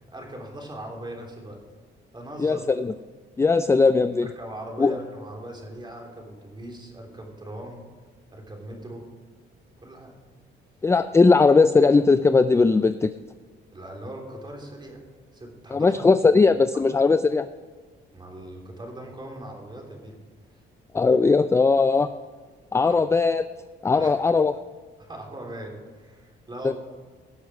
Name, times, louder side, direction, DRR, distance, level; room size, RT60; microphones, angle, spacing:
voice 1, 0.0-1.6 2.1-2.6 4.2-7.9 8.3-9.0 9.8-10.1 13.7-15.0 15.3-16.1 18.1-20.2 22.9-23.0 23.9-24.1 25.0-26.7, right 1 dB, 20° right, 0 dB, 3.3 m, -40 dB
voice 2, 2.4-2.9 3.4-4.3 4.8-4.9 10.8-13.1 15.7-17.5 20.9-22.1 22.7-23.5 23.8-24.5 26.6-26.7, left 4 dB, 15° left, 12 dB, 0.3 m, -19 dB
17.5 x 6.2 x 4.8 m, 1.5 s
cardioid pair, 90°, 20 cm